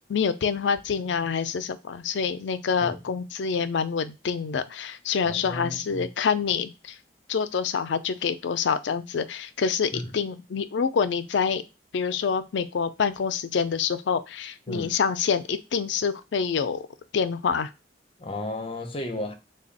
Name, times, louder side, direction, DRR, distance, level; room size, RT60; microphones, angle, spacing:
voice 1, 0.1-7.0 7.3-11.6 11.9-16.8 17.1-17.7, left 6 dB, 80° left, 0.4 m, -26 dB
voice 2, 5.2-6.1 9.9-10.2 14.7-15.0 18.2-19.3, left 1 dB, 30° left, 0.6 m, -34 dB
3.4 x 2.3 x 3.9 m
head